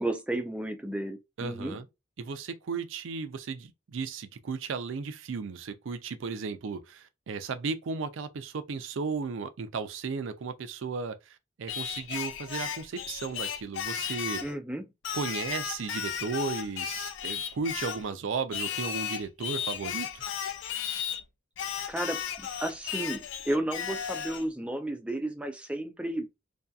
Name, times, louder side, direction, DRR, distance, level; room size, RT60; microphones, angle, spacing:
voice 1, 0.0-1.8 14.4-14.8 21.9-26.3, right 1 dB, 5° right, 0.3 m, -33 dB
voice 2, 1.4-1.9 2.2-14.4 15.1-20.2, right 5 dB, 85° right, 0.4 m, -35 dB
Singing, 11.7-14.5 15.0-18.1 18.5-21.2 21.6-24.5, left 8 dB, 80° left, 0.4 m, -35 dB
2.7 x 2.3 x 2.3 m
head